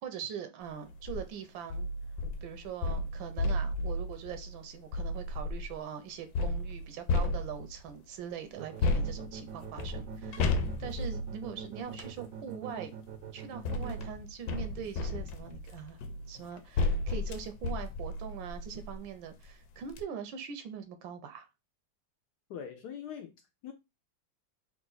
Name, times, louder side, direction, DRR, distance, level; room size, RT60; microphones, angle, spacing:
voice 1, 0.0-1.9 2.4-12.9 13.3-16.0 16.3-21.5, right 8 dB, 85° right, 1.4 m, -42 dB
sound 1, 0.9-1.2 1.7-5.7 6.4-7.9 8.8-12.2 13.1-19.0 19.5-19.6 19.9-20.0, left 2 dB, 90° left, 1.4 m, -33 dB
sound 2, 8.6-14.1, right 7 dB, 70° right, 0.8 m, -43 dB
voice 2, 22.5-23.7, left 8 dB, 70° left, 1.0 m, -43 dB
3.8 x 2.5 x 3.9 m
omnidirectional pair, 2.1 m